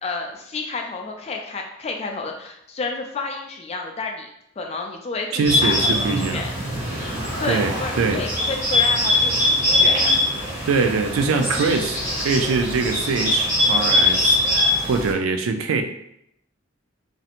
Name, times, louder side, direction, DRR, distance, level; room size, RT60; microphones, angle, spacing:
voice 1, 0.0-4.3 4.6-6.5 7.4-10.1 12.0-12.3, left 3 dB, 30° left, 2 dB, 0.3 m, -31 dB
voice 2, 5.3-6.4 7.5-8.2 10.6-14.4 14.8-15.8, right 4 dB, 85° right, 6 dB, 0.3 m, -23 dB
Bird, 5.4-15.1, left 2 dB, 15° right, 1.0 m, -22 dB
Car, 6.4-10.8, equal, 65° right, 0.9 m, -37 dB
2.6 x 2.0 x 2.8 m, 0.75 s
head